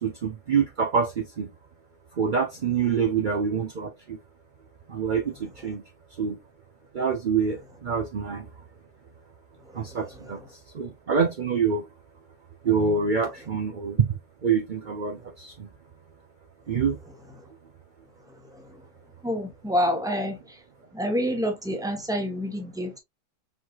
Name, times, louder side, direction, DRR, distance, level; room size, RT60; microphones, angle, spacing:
voice 1, 0.0-1.5 2.1-4.2 4.9-5.8 6.2-6.4 6.9-8.5 9.7-11.9 12.6-15.7 16.7-17.0, right 6 dB, 60° right, 0.5 m, -26 dB
voice 2, 19.2-20.6 20.9-23.0, equal, 5° right, 1.0 m, -27 dB
4.6 x 4.1 x 2.5 m
omnidirectional pair, 1.7 m